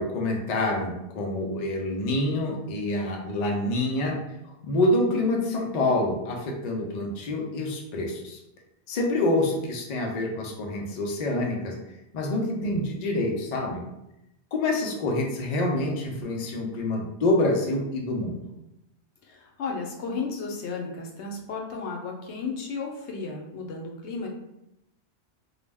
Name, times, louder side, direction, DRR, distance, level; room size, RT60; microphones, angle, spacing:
voice 1, 0.0-4.2 4.6-8.4 8.9-11.7 12.1-13.8 14.5-18.4, left 2 dB, 55° left, 1 dB, 0.5 m, -26 dB
voice 2, 19.2-24.3, left 4 dB, 80° left, 1 dB, 0.9 m, -34 dB
2.3 x 2.0 x 3.3 m, 0.87 s
omnidirectional pair, 1.1 m